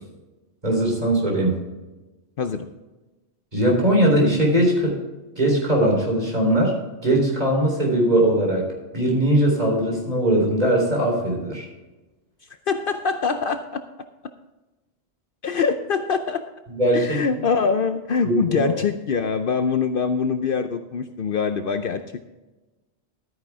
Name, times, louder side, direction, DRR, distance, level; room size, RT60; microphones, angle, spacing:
voice 1, 0.6-1.5 3.5-5.0 5.4-6.7 7.0-8.7 8.9-11.7 16.7-17.2 18.2-18.8, right 1 dB, 40° right, -1 dB, 3.8 m, -20 dB
voice 2, 12.7-13.6 15.4-16.4 16.9-22.0, left 5 dB, 60° left, 8 dB, 0.8 m, -24 dB
13.0 x 9.4 x 3.5 m, 1.1 s
omnidirectional pair, 1.1 m